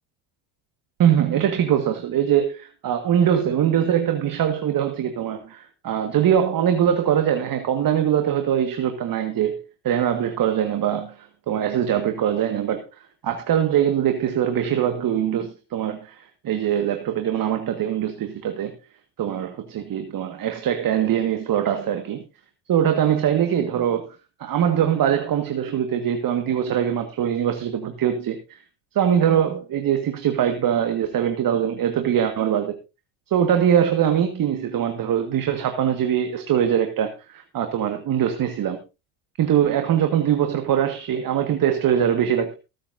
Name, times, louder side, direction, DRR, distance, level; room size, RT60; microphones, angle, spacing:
voice 1, 1.0-12.8 13.2-18.7 19.2-22.2 22.7-24.1 24.4-28.6 29.0-32.8 33.3-38.8 39.4-42.5, right 9 dB, 45° right, 1.8 m, -22 dB
23.5 x 8.6 x 2.7 m
supercardioid pair, 100°, 47 cm